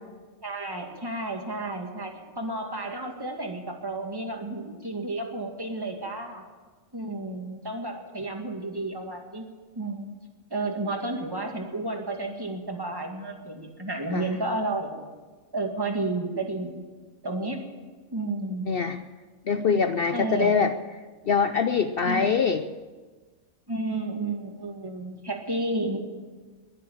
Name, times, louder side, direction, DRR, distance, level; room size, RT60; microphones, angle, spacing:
voice 1, 0.4-6.4 6.9-9.5 9.7-10.2 10.5-15.1 15.5-16.8 17.2-17.7 18.1-18.7 20.1-20.6 22.0-22.4 23.7-26.0, right 2 dB, 15° right, 2 dB, 2.0 m, -32 dB
voice 2, 18.7-19.0 19.5-20.7 21.2-22.6, left 5 dB, 55° left, 9 dB, 0.7 m, -23 dB
21.5 x 7.6 x 8.7 m, 1.4 s
omnidirectional pair, 1.4 m